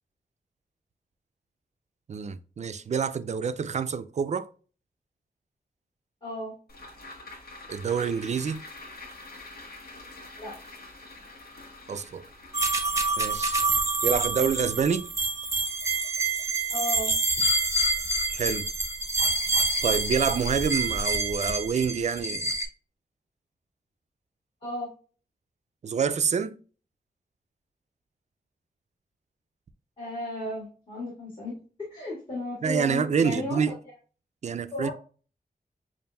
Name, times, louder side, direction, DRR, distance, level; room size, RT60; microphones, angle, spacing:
voice 1, 2.1-4.5 7.7-8.6 11.9-12.2 13.2-13.6 14.0-15.1 18.3-18.6 19.8-22.5 25.8-26.6 32.6-33.8 34.4-34.9, right 6 dB, 50° right, 0.4 m, -27 dB
voice 2, 6.2-6.5 10.4-10.5 16.7-17.1 24.6-24.9 30.0-31.5 31.8-33.6 34.7-34.9, left 1 dB, 30° left, 1.8 m, -34 dB
sound 1, 6.7-17.2 17.6-17.7, left 2 dB, 80° left, 1.3 m, -47 dB
sound 2, 12.5-22.6, right 2 dB, 20° right, 0.7 m, -27 dB
6.7 x 2.6 x 2.2 m
wide cardioid pair, 125°, 15 cm